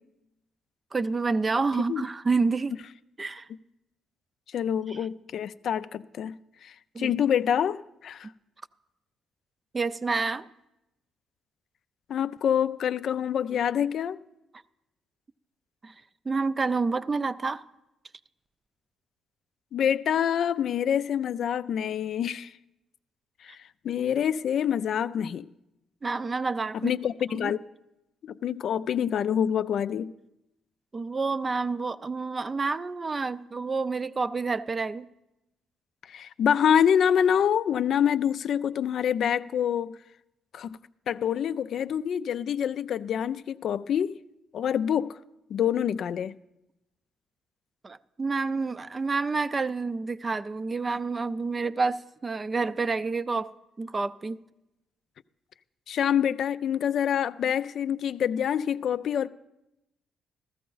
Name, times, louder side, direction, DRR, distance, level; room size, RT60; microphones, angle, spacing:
voice 1, 0.9-2.8 3.2-3.5 4.9-5.0 6.9-7.1 9.7-10.5 15.8-15.9 16.3-17.6 26.0-26.9 27.3-27.5 30.9-35.1 47.8-53.5 53.8-54.4, right 4 dB, 30° right, 0.4 m, -28 dB
voice 2, 4.5-6.3 6.6-8.3 12.1-14.2 19.7-22.5 23.4-23.6 23.8-25.5 26.8-27.6 28.2-30.1 36.1-39.9 40.5-40.8 41.1-44.2 44.5-45.1 45.5-46.4 55.9-59.3, left 8 dB, 65° left, 0.3 m, -26 dB
14.5 x 13.5 x 3.9 m
cardioid pair, 90°, 0 cm